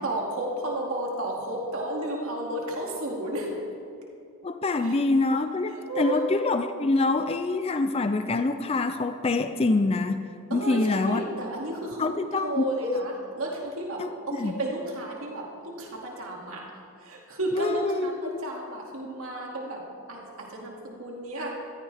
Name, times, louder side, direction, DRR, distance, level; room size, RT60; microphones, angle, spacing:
voice 1, 0.0-3.6 4.8-5.0 5.7-6.2 10.5-16.7 17.0-21.6, right 1 dB, 70° right, -2 dB, 2.5 m, -32 dB
voice 2, 4.4-10.2 10.5-11.3 12.0-13.1 14.0-14.1 14.4-14.6 17.5-18.1, left 3 dB, 25° left, 9 dB, 0.4 m, -25 dB
14.5 x 14.5 x 3.5 m, 2.4 s
head